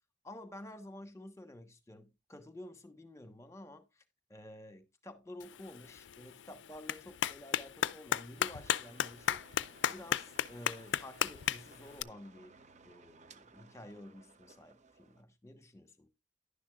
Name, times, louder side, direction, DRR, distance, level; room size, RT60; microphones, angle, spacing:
voice 1, 0.2-4.0 4.3-9.4 9.9-12.6 12.8-16.1, left 1 dB, 15° left, 1.3 m, -51 dB
Clapping, 5.4-12.0, left 9 dB, 80° left, 0.4 m, -36 dB
sound 1, 8.3-15.2, right 4 dB, 40° right, 0.7 m, -60 dB
11.0 x 10.0 x 2.4 m
head